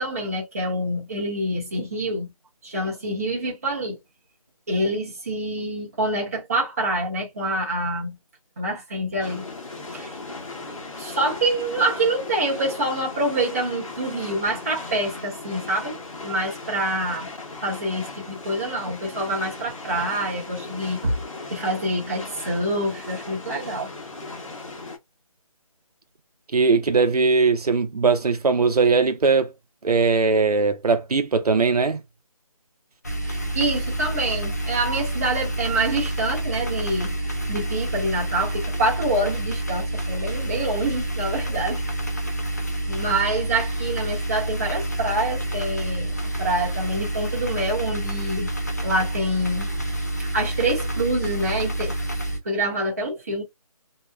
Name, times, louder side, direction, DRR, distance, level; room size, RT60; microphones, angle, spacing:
voice 1, 0.0-2.3 2.6-4.0 4.7-8.1 8.6-9.4 9.9-10.1 11.0-16.0 16.2-17.3 17.6-21.1 21.5-23.9 33.3-37.1 37.5-41.8 42.9-46.1 46.4-48.5 48.8-49.7 50.2-52.0 52.4-53.4, right 1 dB, 25° right, 0.9 m, -26 dB
sound 1, 9.2-25.0, left 3 dB, 60° left, 1.1 m, -37 dB
voice 2, 26.5-29.5 29.8-32.0, right 4 dB, 90° right, 0.7 m, -20 dB
sound 2, 33.0-52.4, right 1 dB, 30° left, 0.5 m, -28 dB
2.8 x 2.1 x 2.2 m
figure-of-eight pair, 170°, 19 cm